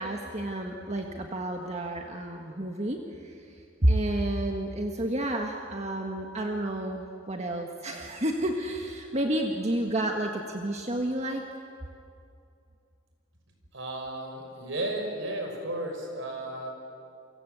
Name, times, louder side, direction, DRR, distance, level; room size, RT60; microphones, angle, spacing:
voice 1, 0.0-11.4, right 1 dB, 35° right, 2 dB, 1.6 m, -30 dB
voice 2, 13.7-16.7, right 1 dB, 65° right, 2 dB, 6.3 m, -34 dB
29.5 x 24.0 x 8.3 m, 2.5 s
head